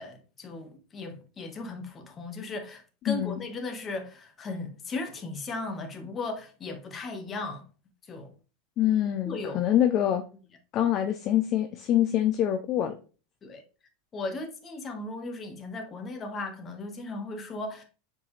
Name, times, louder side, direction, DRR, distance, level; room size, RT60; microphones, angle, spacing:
voice 1, 0.0-7.6 8.1-8.3 9.2-9.6 13.4-13.6 14.1-17.8, left 3 dB, 30° left, 1.6 m, -37 dB
voice 2, 3.1-3.4 8.8-10.2 10.7-13.0, left 11 dB, 45° left, 0.7 m, -25 dB
7.0 x 4.5 x 3.3 m
hypercardioid pair, 100°, 0 cm